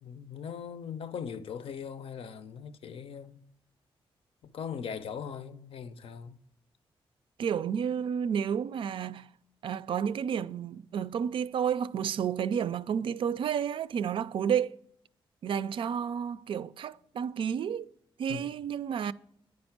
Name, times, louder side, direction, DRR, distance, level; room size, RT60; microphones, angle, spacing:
voice 1, 0.0-3.4 4.4-6.4 18.3-18.5, left 7 dB, 75° left, 0.6 m, -40 dB
voice 2, 7.4-9.3 9.6-14.8 15.4-17.9 18.2-19.1, right 8 dB, 65° right, 0.3 m, -31 dB
9.6 x 5.2 x 5.8 m
wide cardioid pair, 155°, 10 cm